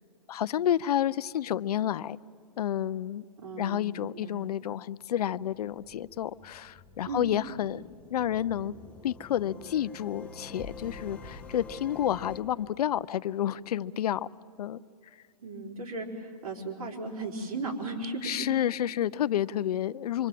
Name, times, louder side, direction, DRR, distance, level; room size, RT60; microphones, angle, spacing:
voice 1, 0.3-2.2 2.6-3.2 3.6-7.8 8.1-8.7 9.0-14.3 14.6-14.8 18.2-20.3, left 11 dB, 70° left, 0.6 m, -30 dB
voice 2, 3.4-4.4 7.0-7.3 15.4-18.4, right 3 dB, 60° right, 4.1 m, -36 dB
sound 1, 5.5-12.4, left 4 dB, 5° left, 1.4 m, -47 dB
26.0 x 25.5 x 7.6 m
hypercardioid pair, 155°, 21 cm